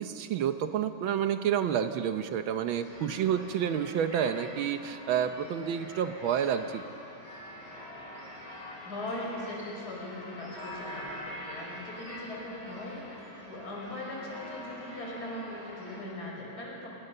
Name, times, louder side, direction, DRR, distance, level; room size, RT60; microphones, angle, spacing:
voice 1, 0.0-6.8, right 8 dB, 85° right, 8 dB, 1.7 m, -29 dB
sound 1, 2.7-16.1, equal, 30° left, 7.3 m, -45 dB
voice 2, 8.8-16.9, left 1 dB, 50° left, -2 dB, 5.9 m, -40 dB
29.5 x 26.0 x 6.8 m, 2.8 s
omnidirectional pair, 2.1 m